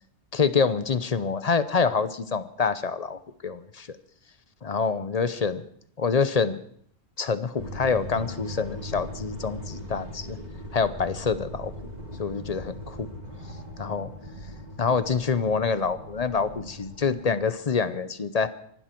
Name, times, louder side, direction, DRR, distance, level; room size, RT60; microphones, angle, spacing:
voice 1, 0.3-3.9 4.6-5.6 6.0-6.6 7.2-10.4 10.7-11.7 12.2-13.1 13.8-14.1 14.8-18.5, left 5 dB, 40° left, 14 dB, 0.8 m, -26 dB
sound 1, 7.6-17.5, equal, 35° right, 3.0 m, -40 dB
24.5 x 12.0 x 4.5 m, 0.64 s
omnidirectional pair, 1.2 m